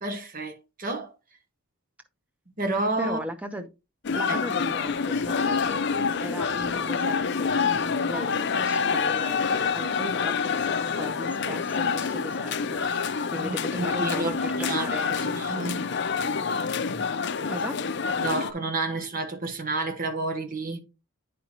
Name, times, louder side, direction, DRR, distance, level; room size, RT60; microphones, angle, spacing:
voice 1, 0.0-1.1 2.6-3.2 4.3-4.4 13.4-14.3 14.6-15.8 18.2-20.8, right 2 dB, 40° right, 1.1 m, -30 dB
voice 2, 3.0-3.7 4.1-5.9 6.2-15.3 17.5-17.8, equal, 5° right, 0.8 m, -37 dB
sound 1, 4.0-18.5, left 5 dB, 55° left, 0.6 m, -27 dB
9.0 x 5.1 x 2.9 m
head